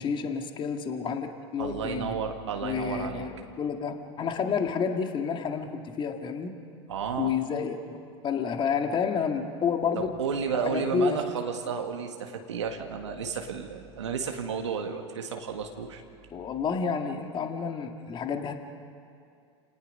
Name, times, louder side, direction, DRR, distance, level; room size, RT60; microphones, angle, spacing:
voice 1, 0.0-2.1 2.6-6.6 7.2-10.2 10.7-11.2 16.3-18.6, left 6 dB, 35° left, 5 dB, 2.0 m, -30 dB
voice 2, 1.6-3.3 6.9-7.3 10.0-16.0, right 6 dB, 80° right, 3 dB, 1.7 m, -32 dB
29.5 x 18.5 x 5.5 m, 2.5 s
hypercardioid pair, 90°, 15 cm